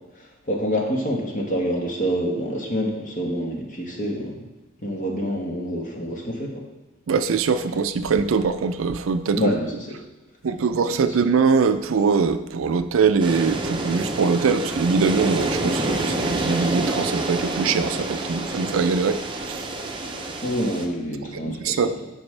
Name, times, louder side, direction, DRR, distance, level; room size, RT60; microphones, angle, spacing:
voice 1, 0.2-4.4 4.8-6.6 9.4-10.0 10.9-11.2 20.4-22.1, equal, 40° left, 0 dB, 1.3 m, -27 dB
voice 2, 7.1-9.5 10.4-19.2 19.5-19.6 21.3-21.9, right 5 dB, 75° right, 11 dB, 0.4 m, -22 dB
sound 1, 13.2-20.9, right 2 dB, 25° right, 0.7 m, -27 dB
11.5 x 5.1 x 3.3 m, 1.1 s
head